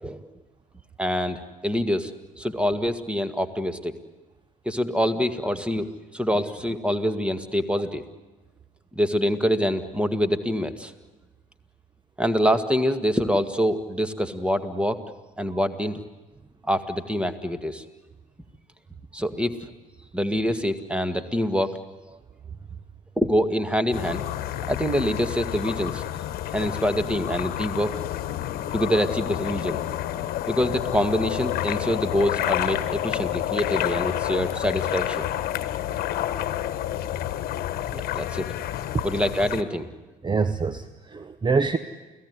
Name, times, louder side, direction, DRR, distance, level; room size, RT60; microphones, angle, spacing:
voice 1, 1.0-2.1 2.4-3.9 4.7-8.0 8.9-10.9 12.2-15.0 15.4-16.0 16.6-17.8 19.1-19.5 20.1-21.8 23.2-24.3 24.7-26.0 26.5-27.9 28.7-29.8 30.5-35.3 37.9-38.6 39.0-39.9, equal, 5° right, 10 dB, 2.0 m, -25 dB
sound 1, 23.9-39.6, left 12 dB, 55° left, 1.4 m, -29 dB
voice 2, 40.2-41.8, right 4 dB, 25° right, 13 dB, 1.0 m, -25 dB
29.5 x 17.0 x 9.7 m, 1.2 s
hypercardioid pair, 55°, 18 cm